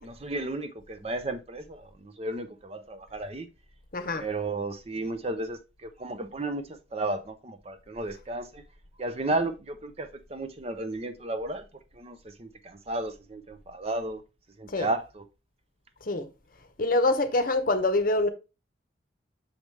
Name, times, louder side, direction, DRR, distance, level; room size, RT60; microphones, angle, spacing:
voice 1, 0.0-3.5 4.1-8.6 9.0-11.6 11.9-14.2 14.6-15.2, right 2 dB, 30° right, 0.6 m, -33 dB
voice 2, 3.9-4.2 14.7-14.9 16.1-16.3 16.8-18.3, left 2 dB, 45° left, 0.8 m, -25 dB
6.4 x 4.9 x 3.2 m
head